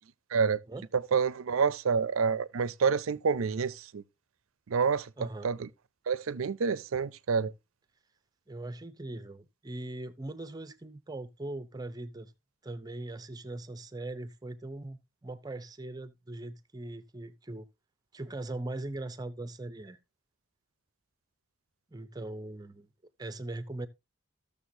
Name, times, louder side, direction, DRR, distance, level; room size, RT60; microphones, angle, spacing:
voice 1, 1.1-4.0 4.7-5.1 5.4-5.7 6.1-7.5, right 5 dB, 85° right, 0.5 m, -28 dB
voice 2, 5.2-5.5 8.5-12.3 12.6-17.7 18.1-20.0 21.9-22.9 23.2-23.9, right 2 dB, 20° right, 0.5 m, -40 dB
14.5 x 6.7 x 2.7 m
head